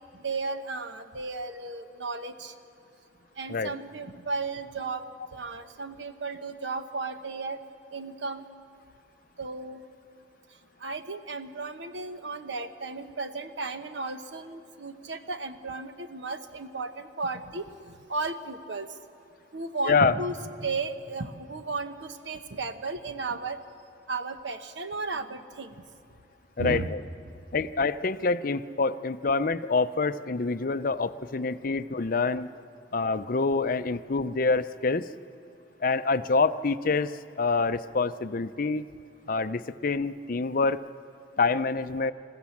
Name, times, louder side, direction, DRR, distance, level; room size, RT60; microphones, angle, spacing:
voice 1, 0.2-2.5 3.4-5.0 5.3-7.6 7.9-8.4 9.4-9.8 10.8-17.6 18.1-18.9 19.5-23.6 24.1-25.7 26.6-26.9, right 3 dB, 85° right, 9 dB, 1.1 m, -34 dB
voice 2, 26.6-27.0 27.5-32.5 32.9-35.1 35.8-38.9 39.3-40.8 41.4-42.1, left 4 dB, 50° left, 12 dB, 0.6 m, -26 dB
27.0 x 15.5 x 7.3 m, 2.5 s
head